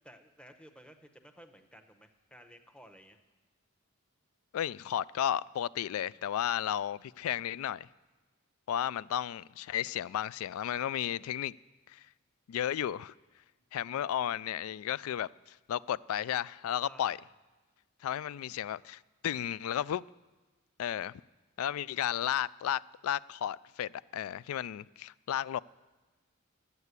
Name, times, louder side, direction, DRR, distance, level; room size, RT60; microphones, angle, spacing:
voice 1, 0.0-3.2 16.8-17.2, equal, 5° left, 0.8 m, -55 dB
voice 2, 4.5-7.9 8.7-11.6 11.9-12.1 12.5-13.1 13.7-17.2 18.0-20.0 20.8-21.2 21.6-25.6, left 10 dB, 75° left, 0.3 m, -33 dB
12.0 x 8.3 x 8.1 m
head